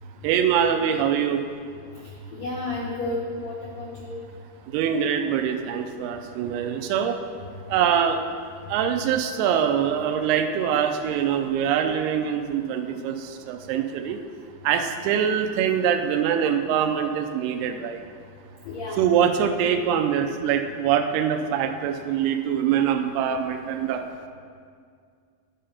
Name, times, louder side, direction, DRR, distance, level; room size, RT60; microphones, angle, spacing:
voice 1, 0.2-1.4 4.7-7.2 7.7-8.2 8.7-13.1 13.5-14.2 14.6-18.0 19.0-24.0, right 8 dB, 80° right, 7 dB, 2.5 m, -23 dB
voice 2, 1.9-4.2 18.6-19.0, left 2 dB, 85° left, -3 dB, 1.5 m, -32 dB
11.0 x 5.3 x 5.6 m, 2.2 s
omnidirectional pair, 4.7 m